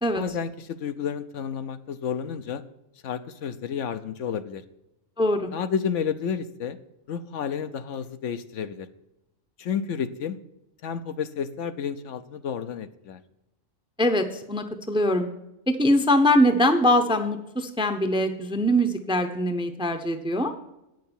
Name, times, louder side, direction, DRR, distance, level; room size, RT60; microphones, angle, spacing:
voice 1, 0.1-2.6 3.0-4.6 5.5-6.8 7.1-8.9 9.6-10.4 10.8-13.2, left 7 dB, 70° left, 11 dB, 1.0 m, -31 dB
voice 2, 5.2-5.5 14.0-15.3 15.7-20.5, equal, 5° right, 7 dB, 0.6 m, -22 dB
9.0 x 6.6 x 7.0 m, 0.92 s
omnidirectional pair, 1.3 m